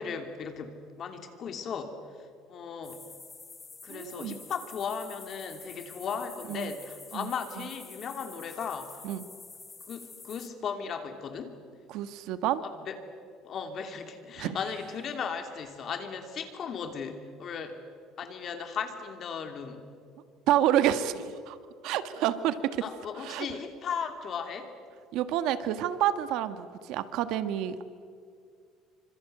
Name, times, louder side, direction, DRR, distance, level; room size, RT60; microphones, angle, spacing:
voice 1, 0.0-1.9 2.5-3.0 3.8-8.9 9.9-11.6 12.8-12.9 13.4-17.8 18.2-19.8 22.8-24.7, left 6 dB, 40° left, 6 dB, 3.0 m, -36 dB
sound 1, 2.8-10.5, left 4 dB, 15° left, 1.3 m, -48 dB
voice 2, 3.9-4.4 6.5-6.7 7.1-7.7 9.0-9.2 11.9-12.6 14.4-14.6 20.5-21.6 21.8-22.8 23.1-23.5 25.1-27.8, right 11 dB, 65° right, 11 dB, 1.5 m, -29 dB
27.5 x 25.5 x 8.0 m, 2.2 s
cardioid pair, 150°, 0 cm